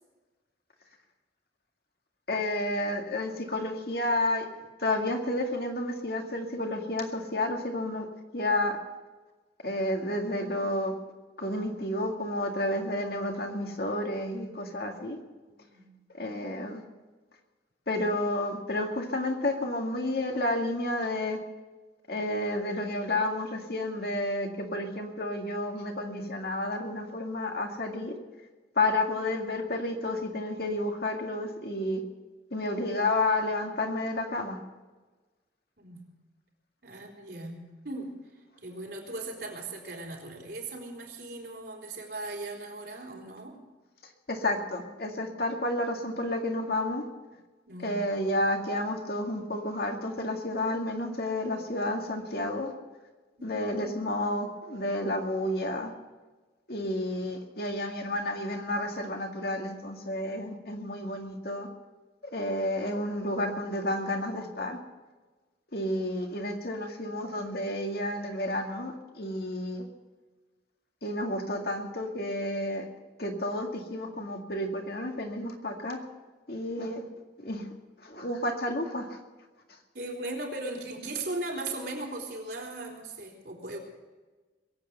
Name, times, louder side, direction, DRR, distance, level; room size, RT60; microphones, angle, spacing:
voice 1, 2.3-4.4 4.8-8.1 8.3-8.8 9.6-10.9 11.4-15.2 16.2-16.8 17.9-21.4 22.1-28.1 28.8-32.0 32.5-34.6 44.3-47.0 47.8-52.7 53.4-55.9 56.7-61.7 62.3-64.8 65.7-69.8 71.0-72.9 73.2-76.0 76.5-77.0 77.4-77.7 78.0-79.1, left 1 dB, 55° left, 3 dB, 2.1 m, -31 dB
voice 2, 15.5-16.0 35.8-36.1 36.8-38.1 38.6-43.6 47.7-48.0 53.4-53.9 79.9-83.8, right 2 dB, 65° right, -1 dB, 4.0 m, -38 dB
21.5 x 8.6 x 6.8 m, 1.3 s
head